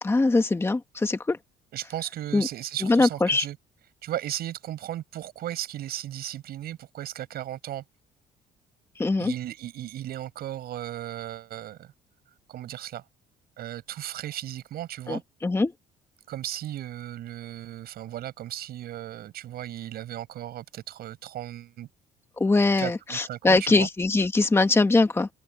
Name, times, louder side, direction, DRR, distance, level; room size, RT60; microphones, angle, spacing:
voice 1, 0.0-1.4 2.3-2.5 2.8-3.4 9.0-9.3 15.1-15.7 22.4-25.3, left 3 dB, 15° left, 1.4 m, -22 dB
voice 2, 1.7-3.6 4.0-7.8 9.2-11.9 12.5-13.0 13.6-15.2 16.3-21.9 22.8-23.9, right 12 dB, 65° right, 5.9 m, -36 dB
cardioid pair, 110°, 17 cm